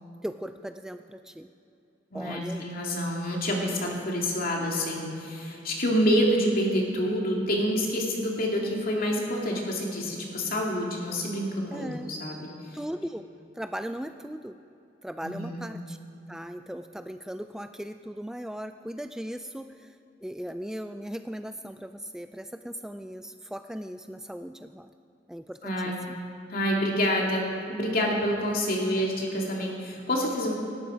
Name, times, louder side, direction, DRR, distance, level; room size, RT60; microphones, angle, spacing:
voice 1, 0.2-1.5 2.1-2.7 11.7-12.1 12.7-13.2 13.5-14.6 15.0-16.0 16.3-24.9 25.3-26.2, equal, 5° right, 8 dB, 0.3 m, -38 dB
voice 2, 2.1-12.8 15.2-15.6 25.6-26.0 26.5-30.5, equal, 50° left, -1 dB, 2.7 m, -27 dB
18.5 x 12.5 x 5.1 m, 2.8 s
head